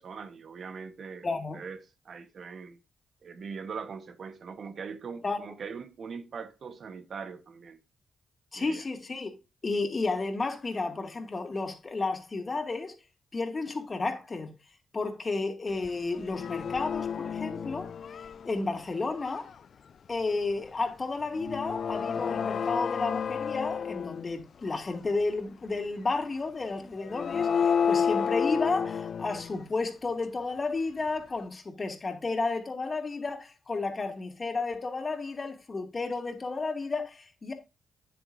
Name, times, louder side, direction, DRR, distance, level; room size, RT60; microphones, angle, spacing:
voice 1, 0.0-1.3 1.5-1.8 2.0-2.8 3.2-7.8 8.5-8.9, right 5 dB, 65° right, 1.2 m, -41 dB
voice 2, 1.2-1.6 5.2-5.4 8.5-9.3 9.6-12.9 13.3-14.5 14.9-17.9 18.4-19.5 20.1-37.5, left 3 dB, 45° left, 2.5 m, -32 dB
sound 1, 15.8-18.6 19.2-19.5 21.3-24.4 24.9-25.0 27.0-29.6, left 7 dB, 70° left, 0.5 m, -30 dB
9.5 x 8.6 x 2.7 m
supercardioid pair, 45°, 0 cm